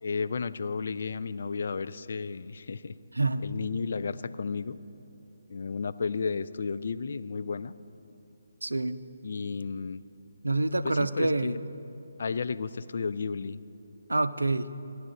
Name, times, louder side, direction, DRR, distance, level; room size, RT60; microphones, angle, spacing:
voice 1, 0.0-2.9 3.4-4.8 5.5-7.7 9.2-10.0 10.8-11.6 12.2-13.6, left 5 dB, 55° left, 14 dB, 0.3 m, -33 dB
voice 2, 3.2-3.5 8.6-9.0 10.4-11.6 14.1-14.7, right 2 dB, 80° right, 13 dB, 0.5 m, -27 dB
16.0 x 11.0 x 4.1 m, 2.8 s
figure-of-eight pair, 145°, 0 cm